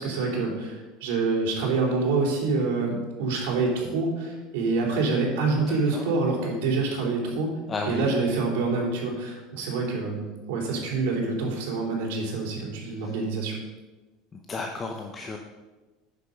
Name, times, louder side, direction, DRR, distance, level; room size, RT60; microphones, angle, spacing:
voice 1, 0.0-7.6 7.8-13.6, right 3 dB, 75° right, -2 dB, 3.3 m, -26 dB
voice 2, 5.7-6.0 7.7-8.1 14.5-15.4, left 4 dB, 20° left, 3 dB, 0.7 m, -33 dB
9.8 x 6.8 x 5.3 m, 1.2 s
cardioid pair, 160°, 0 cm